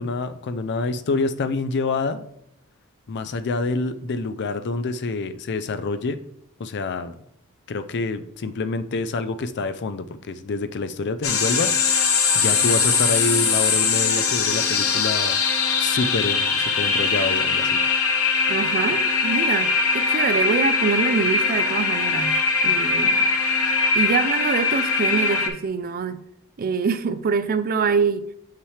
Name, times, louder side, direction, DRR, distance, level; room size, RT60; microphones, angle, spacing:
voice 1, 0.0-2.3 3.1-6.2 6.6-7.2 7.7-11.7 12.3-15.4 15.8-17.8, left 3 dB, 50° left, 0.5 m, -27 dB
sound 1, 11.2-25.5, left 4 dB, 70° left, 1.1 m, -21 dB
voice 2, 18.5-23.3 23.9-26.2 26.6-28.3, right 5 dB, 40° right, 0.4 m, -25 dB
7.1 x 5.7 x 3.3 m
head